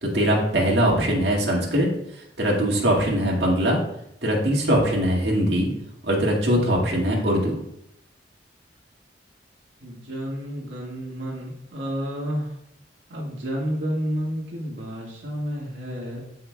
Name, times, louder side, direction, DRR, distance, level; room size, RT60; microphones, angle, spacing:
voice 1, 0.0-1.9 2.4-3.8 4.2-5.7 6.1-7.6, equal, 65° right, -2 dB, 2.0 m, -21 dB
voice 2, 0.8-1.3 9.8-12.5 13.1-16.2, equal, 80° right, -4 dB, 1.7 m, -31 dB
15.0 x 5.6 x 2.3 m, 0.79 s
head